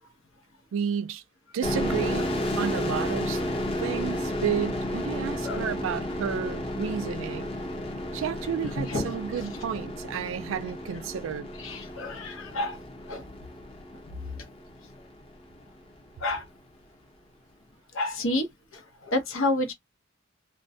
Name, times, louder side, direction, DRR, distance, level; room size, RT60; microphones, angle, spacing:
voice 1, 0.7-1.2 1.5-2.3 2.6-3.4 3.8-7.5 8.1-11.5, right 7 dB, 80° right, 0.3 m, -31 dB
sound 1, 1.6-15.1, left 1 dB, 30° left, 0.7 m, -32 dB
voice 2, 8.6-9.1 11.6-12.8 13.1-13.3 14.0-14.5 16.2-16.5 17.9-19.7, left 2 dB, 85° left, 0.8 m, -30 dB
2.2 x 2.1 x 2.6 m
head